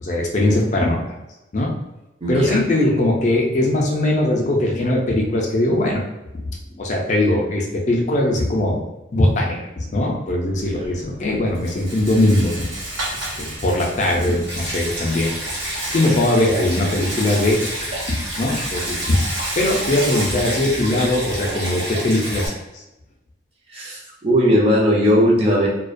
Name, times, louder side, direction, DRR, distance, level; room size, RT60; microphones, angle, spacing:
voice 1, 0.0-1.1 1.5-1.7 2.3-6.0 6.3-6.4 6.7-8.8 9.1-12.7 13.1-15.3 15.9-17.8 18.0-19.2 19.6-22.8, left 1 dB, 40° left, -1 dB, 0.4 m, -20 dB
voice 2, 2.2-2.6 23.7-25.7, equal, 30° right, -4 dB, 0.5 m, -17 dB
Rattle, 10.5-21.5, right 1 dB, 90° right, 1.0 m, -33 dB
Stream, 14.5-22.5, right 1 dB, 60° right, 1.1 m, -29 dB
2.4 x 2.1 x 2.5 m, 0.99 s
head